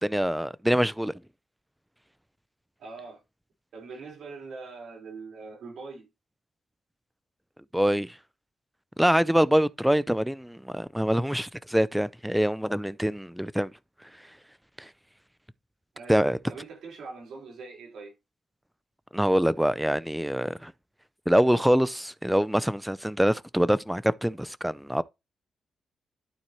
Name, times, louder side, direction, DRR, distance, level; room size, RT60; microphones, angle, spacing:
voice 1, 0.0-1.1 7.7-8.1 9.0-13.7 14.8-14.9 16.1-16.4 19.1-20.7 21.3-25.0, equal, 5° right, 0.4 m, -24 dB
voice 2, 2.8-3.2 3.7-6.1 15.9-18.1, right 4 dB, 85° right, 4.0 m, -42 dB
11.5 x 4.3 x 3.1 m
wide cardioid pair, 130°, 0 cm